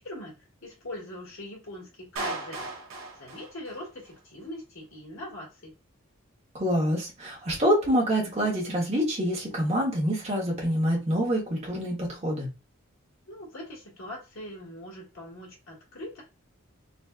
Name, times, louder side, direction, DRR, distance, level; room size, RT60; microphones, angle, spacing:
voice 1, 0.0-2.7 3.2-5.7 13.3-16.2, left 1 dB, 75° left, 1.9 m, -41 dB
Clapping, 2.2-4.2, right 2 dB, 75° right, 0.9 m, -37 dB
voice 2, 6.5-12.5, equal, 30° right, 1.3 m, -26 dB
4.0 x 2.7 x 2.3 m
head